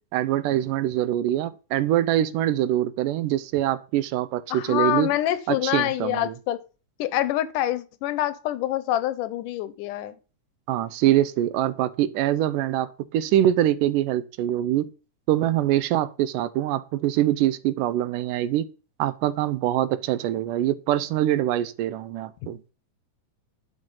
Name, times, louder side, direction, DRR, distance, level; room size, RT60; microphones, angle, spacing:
voice 1, 0.1-5.1 5.5-6.3 10.7-14.9 15.3-18.7 19.0-22.6, right 12 dB, 85° right, 2.2 m, -24 dB
voice 2, 4.5-6.6 7.0-10.2, left 13 dB, 85° left, 2.3 m, -26 dB
10.5 x 6.4 x 5.4 m
omnidirectional pair, 3.7 m